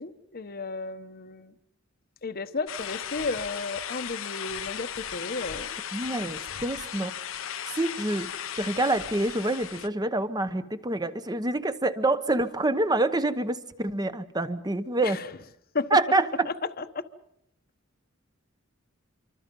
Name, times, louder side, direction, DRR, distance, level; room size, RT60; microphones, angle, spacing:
voice 1, 0.0-1.5 2.2-5.7 15.0-15.2 15.7-16.0 16.8-17.1, left 3 dB, 45° left, 11 dB, 1.0 m, -33 dB
sound 1, 2.7-9.9, left 9 dB, 70° left, 0.9 m, -36 dB
voice 2, 5.9-7.1 7.7-15.2 15.9-16.5, right 2 dB, 20° right, 12 dB, 1.0 m, -27 dB
27.0 x 24.5 x 5.4 m, 0.74 s
head